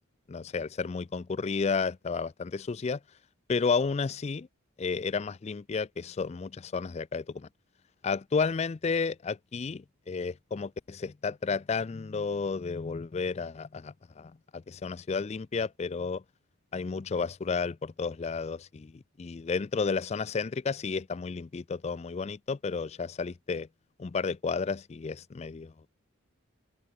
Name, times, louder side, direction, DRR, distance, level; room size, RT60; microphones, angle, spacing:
voice 1, 0.3-3.0 3.5-4.5 4.8-7.5 8.0-16.2 16.7-23.7 24.0-25.7, left 5 dB, 30° left, 0.4 m, -32 dB
head